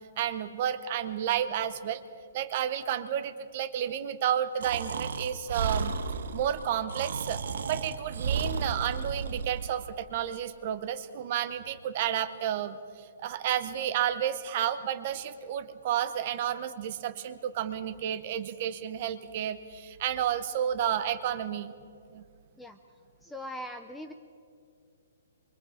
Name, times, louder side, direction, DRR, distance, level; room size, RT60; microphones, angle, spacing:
voice 1, 0.2-2.0 2.3-5.9 6.3-7.4 7.7-21.7 22.1-22.2, right 10 dB, 30° right, 12 dB, 0.8 m, -31 dB
Breathing, 4.6-9.7, right 5 dB, 60° right, 1.3 m, -33 dB
voice 2, 23.2-24.1, equal, 5° left, 6 dB, 0.5 m, -40 dB
25.5 x 24.0 x 5.0 m, 2.3 s
hypercardioid pair, 175°, 0 cm